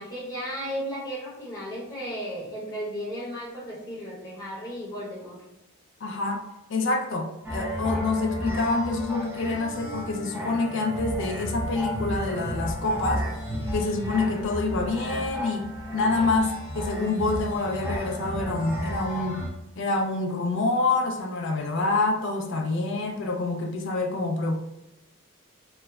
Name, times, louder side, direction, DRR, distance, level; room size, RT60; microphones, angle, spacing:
voice 1, 0.0-5.4, equal, 15° left, -7 dB, 0.8 m, -34 dB
voice 2, 6.0-6.4 6.7-13.3 13.7-15.7 15.9-19.4 19.8-24.6, left 3 dB, 55° left, 3 dB, 0.4 m, -27 dB
sound 1, 7.4-19.5, left 1 dB, 10° right, 0.4 m, -32 dB
3.0 x 2.0 x 2.3 m, 0.95 s
head